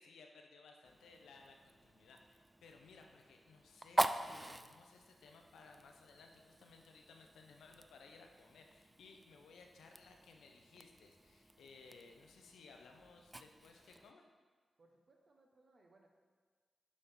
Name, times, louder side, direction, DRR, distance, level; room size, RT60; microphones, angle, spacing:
voice 1, 0.0-14.2, left 4 dB, 85° left, 3 dB, 0.6 m, -60 dB
Fire, 0.8-14.1, right 1 dB, 20° right, 0.3 m, -45 dB
voice 2, 14.8-16.1, right 2 dB, 55° right, 1 dB, 1.1 m, -68 dB
6.1 x 4.2 x 5.2 m, 1.5 s
supercardioid pair, 45°, 0 cm